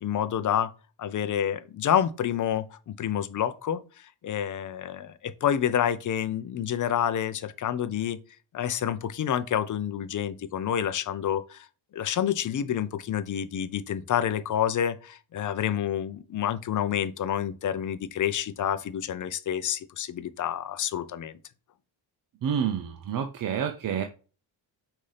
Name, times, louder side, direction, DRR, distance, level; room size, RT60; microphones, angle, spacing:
voice 1, 0.0-0.7 1.0-3.8 4.2-8.2 8.5-11.7 11.9-21.4, left 9 dB, 45° left, 0.5 m, -28 dB
voice 2, 22.4-24.0, right 8 dB, 50° right, 0.6 m, -28 dB
5.5 x 2.7 x 3.3 m
cardioid pair, 90°, 45 cm